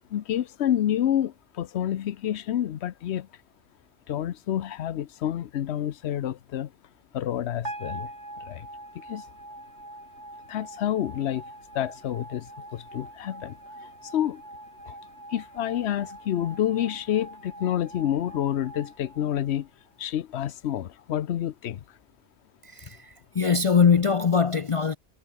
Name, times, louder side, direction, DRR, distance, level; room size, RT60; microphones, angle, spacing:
voice 1, 0.1-3.3 4.1-6.7 7.1-8.1 8.5-8.6 9.1-9.2 10.5-11.4 11.7-12.5 12.7-13.6 14.1-14.4 15.3-19.7 20.0-21.8, left 11 dB, 70° left, 1.0 m, -28 dB
sound 1, 7.6-19.9, right 1 dB, 80° right, 8.0 m, -43 dB
voice 2, 22.6-25.0, left 6 dB, 45° left, 0.4 m, -22 dB
omnidirectional pair, 1.2 m